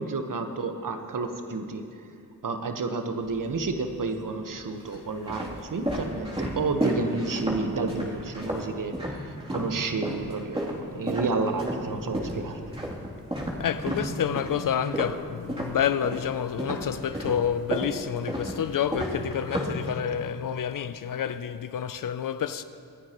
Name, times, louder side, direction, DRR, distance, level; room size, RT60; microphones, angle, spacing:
voice 1, 0.0-1.8 2.4-9.0 9.5-12.6, right 3 dB, 60° right, 1.3 m, -30 dB
sound 1, 3.2-3.9 4.6-9.7 10.0-16.3 16.6-20.3, equal, 15° right, 3.0 m, -32 dB
voice 2, 13.6-22.6, left 8 dB, 60° left, 0.5 m, -29 dB
27.0 x 9.7 x 3.1 m
cardioid pair, 45°, 37 cm